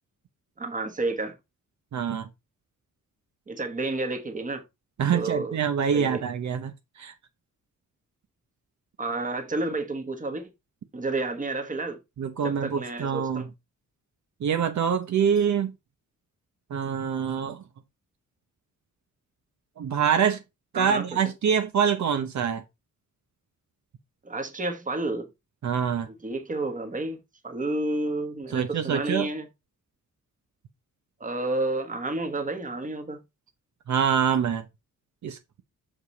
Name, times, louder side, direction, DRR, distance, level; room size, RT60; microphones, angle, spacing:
voice 1, 0.6-1.4 3.5-4.6 5.1-5.6 5.9-6.2 9.0-10.5 10.9-12.0 12.4-13.5 20.7-21.1 24.2-25.3 26.1-27.2 27.4-29.5 31.2-33.2, right 2 dB, 25° right, 1.5 m, -30 dB
voice 2, 1.9-2.3 5.0-7.1 12.2-13.4 14.4-15.7 16.7-17.6 19.8-20.4 20.7-22.6 25.6-26.1 28.5-29.3 33.9-34.6 35.2-35.4, right 7 dB, 65° right, 1.0 m, -25 dB
6.8 x 5.4 x 4.1 m
wide cardioid pair, 150°, 31 cm